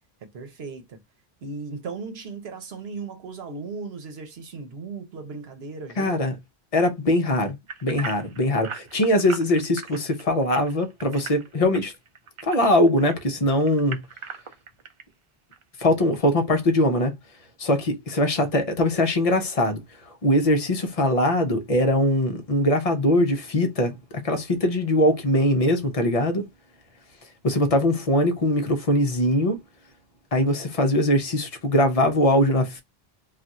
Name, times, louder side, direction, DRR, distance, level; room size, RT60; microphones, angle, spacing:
voice 1, 0.3-1.0 1.4-6.3, right 4 dB, 75° right, 1.0 m, -36 dB
voice 2, 6.0-6.3 6.7-7.6 7.8-11.9 12.4-14.0 15.8-17.1 17.6-19.8 20.2-24.0 24.2-26.5 27.4-29.6 30.3-32.8, left 1 dB, 40° left, 0.7 m, -21 dB
sound 1, 7.7-13.1 13.6-15.0 15.5-15.6 16.1-16.2, right 6 dB, 45° right, 0.4 m, -38 dB
2.4 x 2.4 x 4.0 m
omnidirectional pair, 1.1 m